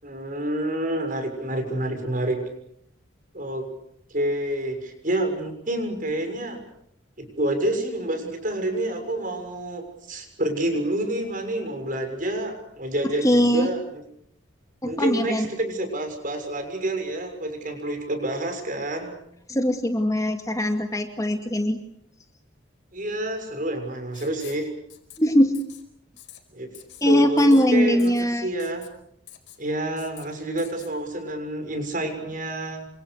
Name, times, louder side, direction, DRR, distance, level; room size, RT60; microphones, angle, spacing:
voice 1, 0.0-2.4 3.3-3.7 4.1-6.6 7.2-14.0 14.8-19.2 22.9-24.7 26.5-26.7 27.0-28.8 29.6-32.9, right 1 dB, 45° right, 6 dB, 6.8 m, -28 dB
voice 2, 13.0-13.7 14.8-15.5 19.5-21.8 25.2-25.6 27.0-28.5, equal, 15° left, 5 dB, 2.2 m, -21 dB
Writing, 24.1-24.6 24.9-25.2 25.5-25.8 26.2-26.4 26.7-27.0 27.4-27.7 28.0-28.2 28.6-28.9 29.3-29.6 30.0-30.2 30.6-30.9, left 12 dB, 65° left, 5.1 m, -46 dB
28.5 x 26.5 x 6.6 m, 0.73 s
head